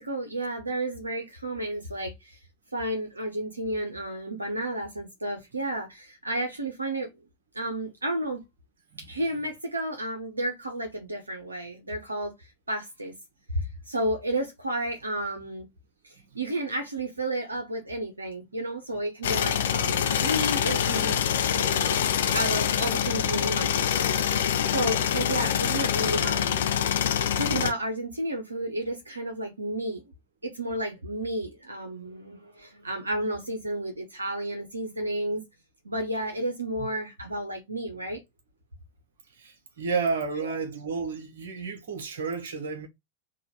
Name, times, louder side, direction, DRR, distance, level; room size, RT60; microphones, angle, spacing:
voice 1, 0.0-2.4 2.7-7.1 7.5-8.4 9.0-13.1 13.5-15.7 16.0-22.0 22.3-24.3 24.7-26.6 27.4-30.0 30.4-35.4 35.8-38.2, right 1 dB, 80° right, 0.8 m, -32 dB
sound 1, 19.2-27.7, left 9 dB, 60° left, 0.5 m, -25 dB
voice 2, 39.4-42.9, right 4 dB, 60° right, 1.1 m, -31 dB
3.9 x 2.5 x 4.5 m
figure-of-eight pair, 90°, 0 cm